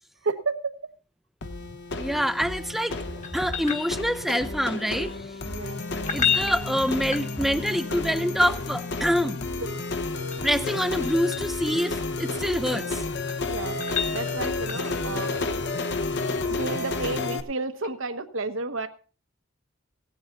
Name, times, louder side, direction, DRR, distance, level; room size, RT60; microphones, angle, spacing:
voice 1, 0.2-0.7 5.5-5.8 13.5-13.8 14.1-15.3 16.4-18.9, right 3 dB, 70° right, 1.2 m, -31 dB
sound 1, 1.4-17.4, left 3 dB, 55° left, 1.0 m, -31 dB
voice 2, 2.0-3.0 3.3-5.3 6.1-9.4 10.4-13.0, equal, ahead, 0.6 m, -26 dB
sound 2, 3.2-4.5 5.9-7.8 9.9-11.6 13.0-15.1 17.8-17.9, left 8 dB, 35° left, 1.4 m, -31 dB
17.0 x 9.5 x 3.8 m
head